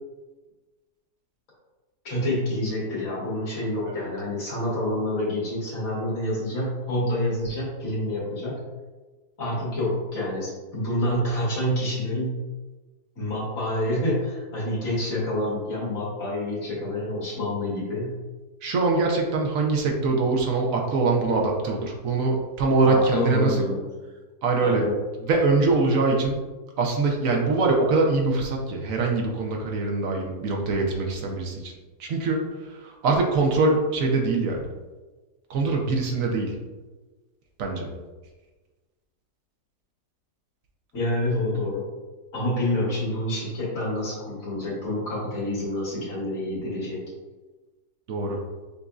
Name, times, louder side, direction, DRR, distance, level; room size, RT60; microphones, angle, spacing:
voice 1, 2.0-8.6 9.4-12.4 13.2-18.2 22.8-23.8 24.6-25.0 40.9-41.9 42.3-47.0, left 1 dB, 55° left, -7 dB, 2.0 m, -27 dB
voice 2, 18.6-23.6 24.4-24.9 25.2-26.4 26.8-31.7 32.0-34.7 35.5-36.5 37.6-37.9 48.1-48.4, right 3 dB, 65° right, 0 dB, 1.0 m, -23 dB
7.0 x 2.6 x 2.3 m, 1.2 s
omnidirectional pair, 1.7 m